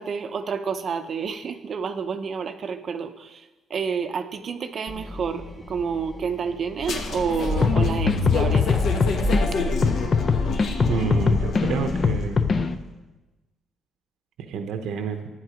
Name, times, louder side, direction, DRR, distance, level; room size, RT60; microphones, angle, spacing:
voice 1, 0.0-3.4 3.7-8.8, right 6 dB, 40° right, 9 dB, 0.6 m, -29 dB
sound 1, 4.9-12.3, left 2 dB, 10° left, 1.4 m, -41 dB
sound 2, 6.8-12.4, left 4 dB, 55° left, 1.2 m, -26 dB
sound 3, 7.6-9.4 9.8-12.7, left 4 dB, 30° left, 0.5 m, -22 dB
voice 2, 10.9-12.5 14.5-15.3, right 6 dB, 80° right, 7 dB, 0.8 m, -29 dB
11.5 x 9.3 x 5.1 m, 1.1 s
cardioid pair, 150°, 0 cm